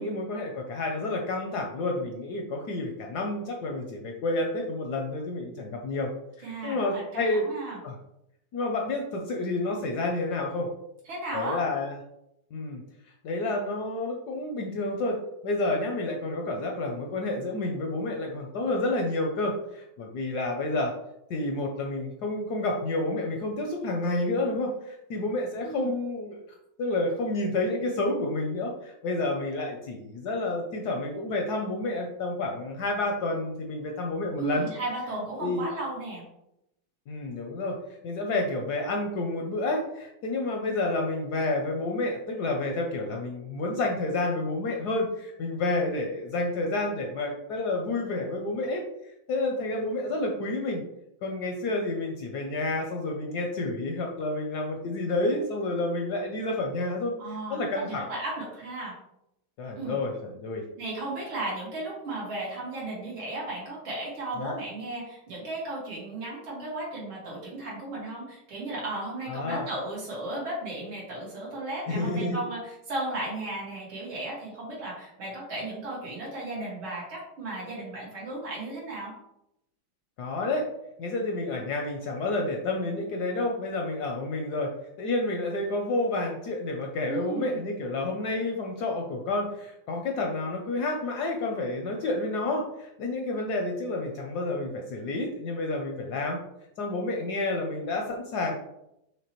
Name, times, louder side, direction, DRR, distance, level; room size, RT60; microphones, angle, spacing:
voice 1, 0.0-6.1 6.4-7.5 7.8-8.0 8.5-10.7 11.3-12.0 12.5-12.8 13.2-20.9 21.3-26.4 26.8-34.7 35.4-35.7 37.1-37.8 38.0-48.8 49.3-50.8 51.2-57.1 57.5-58.0 59.6-60.6 64.4-64.5 69.3-69.6 71.9-72.4 80.2-80.7 81.0-96.4 96.8-98.5, left 2 dB, 70° left, 2 dB, 0.9 m, -29 dB
voice 2, 6.4-7.8 11.1-11.6 25.6-25.9 34.4-36.2 57.2-58.9 59.8-60.0 60.8-79.1 87.1-87.6, right 2 dB, 85° right, -5 dB, 2.6 m, -35 dB
5.9 x 3.1 x 2.9 m, 0.83 s
omnidirectional pair, 2.2 m